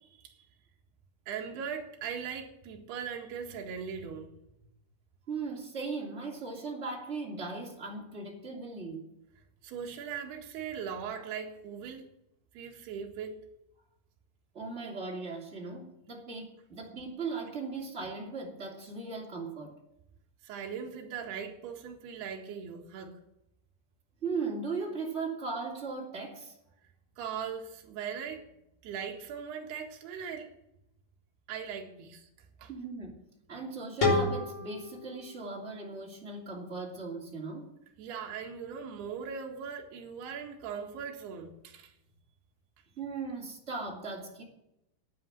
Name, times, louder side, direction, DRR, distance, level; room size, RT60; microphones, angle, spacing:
voice 1, 1.3-4.3 9.6-12.1 12.5-13.4 20.4-23.2 27.2-28.5 28.8-30.5 31.5-32.3 32.6-32.7 38.0-41.9, right 7 dB, 65° right, 3.4 m, -39 dB
voice 2, 5.3-9.0 14.5-19.8 24.2-26.5 32.7-37.7 43.0-44.4, right 4 dB, 20° right, 2.0 m, -38 dB
sound 1, 34.0-36.8, left 3 dB, 30° left, 4.0 m, -32 dB
11.5 x 9.4 x 7.5 m
omnidirectional pair, 5.5 m